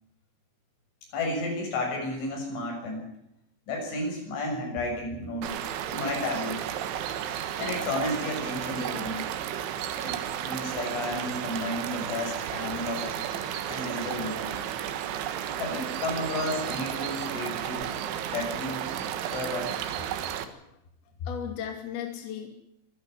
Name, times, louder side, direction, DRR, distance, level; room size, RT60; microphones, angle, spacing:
voice 1, 1.1-3.0 3.7-5.5 5.9-6.6 7.6-9.2 10.0-13.1 13.7-14.5 15.6-17.9 18.3-18.9 19.3-19.7, left 2 dB, 85° left, 1 dB, 9.6 m, -32 dB
sound 1, 5.4-20.4, right 10 dB, 85° right, 4.0 m, -33 dB
voice 2, 20.4-20.8 21.3-22.5, left 9 dB, 60° left, 4 dB, 4.1 m, -36 dB
24.0 x 14.0 x 9.8 m, 0.78 s
omnidirectional pair, 5.3 m